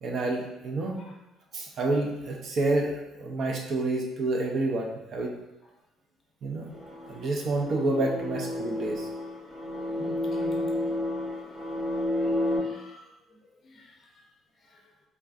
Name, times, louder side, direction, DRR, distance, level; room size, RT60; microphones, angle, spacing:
voice 1, 0.0-1.0 1.5-5.3 6.4-6.6 7.1-9.1, right 2 dB, 45° right, 0 dB, 0.4 m, -28 dB
sound 1, 6.6-12.6, left 1 dB, 10° left, 1.0 m, -31 dB
voice 2, 9.8-10.9 12.2-13.0 13.6-13.9, left 2 dB, 35° left, 0 dB, 0.5 m, -46 dB
3.3 x 2.4 x 2.4 m, 0.94 s
cardioid pair, 160°, 0 cm